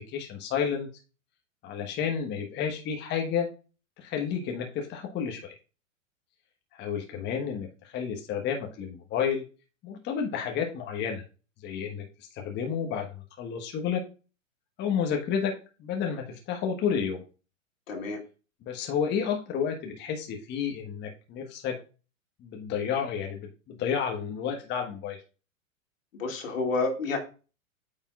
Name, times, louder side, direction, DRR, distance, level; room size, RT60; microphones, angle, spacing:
voice 1, 0.1-0.9 1.6-3.5 4.0-5.5 6.7-9.4 9.8-11.2 11.6-14.0 14.8-15.5 15.8-17.2 18.6-21.7 22.4-25.2, left 7 dB, 25° left, 2 dB, 1.2 m, -31 dB
voice 2, 17.9-18.2 26.1-27.2, left 3 dB, 70° left, 2 dB, 2.4 m, -29 dB
8.9 x 5.5 x 2.3 m, 0.34 s
hypercardioid pair, 110°, 41 cm